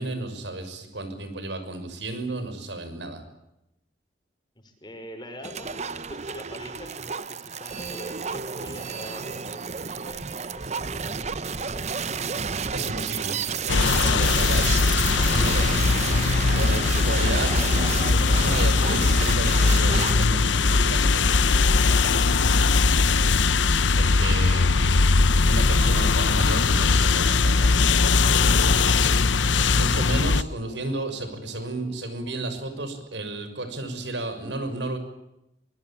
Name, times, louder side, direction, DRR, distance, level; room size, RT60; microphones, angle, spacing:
voice 1, 0.0-3.2 12.7-14.8 15.3-15.7 16.5-17.6 18.1-21.3 21.9-22.7 23.9-25.1 25.5-28.0 28.4-29.0 29.7-35.0, right 2 dB, 75° right, 8 dB, 6.3 m, -33 dB
voice 2, 4.6-12.0, equal, 25° left, 6 dB, 5.3 m, -43 dB
sound 1, 5.4-20.3, right 5 dB, 40° right, 0.9 m, -31 dB
sound 2, 13.7-30.4, left 4 dB, 90° left, 0.9 m, -20 dB
sound 3, 14.4-32.3, left 3 dB, 40° left, 4.4 m, -47 dB
24.5 x 21.5 x 8.7 m, 0.86 s
head